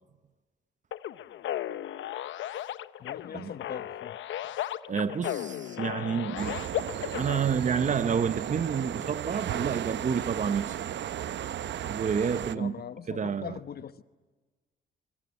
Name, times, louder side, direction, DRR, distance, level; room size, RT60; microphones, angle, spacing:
sound 1, 0.9-7.4, left 12 dB, 75° left, 0.9 m, -35 dB
voice 1, 3.0-4.2 12.5-13.9, left 8 dB, 50° left, 1.1 m, -40 dB
voice 2, 4.9-6.6 7.1-10.7 11.9-12.8 13.1-13.6, right 6 dB, 40° right, 0.9 m, -29 dB
sound 2, 6.4-12.6, right 11 dB, 65° right, 0.8 m, -35 dB
25.5 x 23.5 x 9.7 m
cardioid pair, 90°, 20 cm